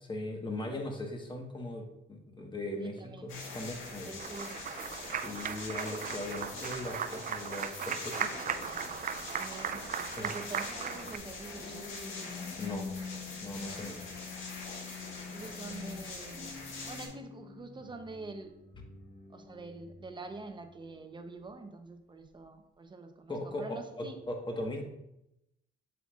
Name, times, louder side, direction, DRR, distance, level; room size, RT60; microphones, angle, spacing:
voice 1, 0.1-4.1 5.2-8.3 8.6-8.7 10.2-10.3 12.6-12.9 13.4-14.0 23.3-24.8, left 1 dB, 25° left, 2 dB, 1.3 m, -39 dB
voice 2, 2.8-3.3 4.0-4.6 9.3-9.9 10.1-12.0 15.3-16.5 16.9-18.5 19.3-24.2, right 3 dB, 25° right, 7 dB, 0.8 m, -46 dB
sound 1, 3.3-17.1, left 3 dB, 90° left, 1.6 m, -43 dB
Applause, 4.2-11.2, right 8 dB, 45° right, 0.4 m, -37 dB
sound 2, 11.4-21.7 22.2-22.5, left 5 dB, 50° left, 1.2 m, -47 dB
7.5 x 5.9 x 2.4 m, 0.85 s
cardioid pair, 90°, 20 cm